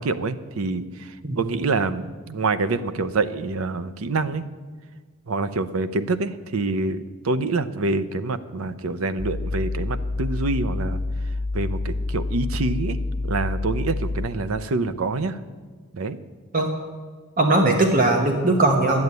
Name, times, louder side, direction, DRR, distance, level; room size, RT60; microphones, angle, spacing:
voice 1, 0.0-4.4 5.3-11.0 11.5-15.4 15.9-16.2, right 3 dB, 75° right, 12 dB, 0.7 m, -26 dB
sound 1, 9.2-14.3, left 2 dB, 20° left, 0.6 m, -27 dB
voice 2, 17.4-19.0, right 2 dB, 40° right, 2 dB, 1.1 m, -19 dB
10.5 x 8.0 x 9.5 m, 1.4 s
head